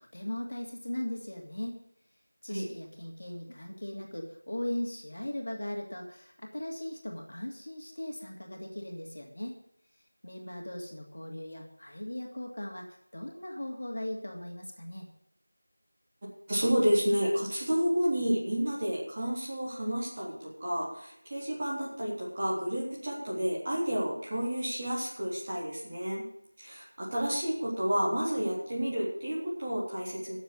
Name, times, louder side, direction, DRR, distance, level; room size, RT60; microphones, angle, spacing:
voice 1, 0.1-1.8 2.4-9.6 10.2-15.1, left 1 dB, 50° left, 0 dB, 2.7 m, -38 dB
voice 2, 16.5-26.2 26.6-30.4, equal, 20° right, -5 dB, 3.4 m, -30 dB
14.0 x 7.4 x 6.6 m, 0.75 s
figure-of-eight pair, 180°, 0 cm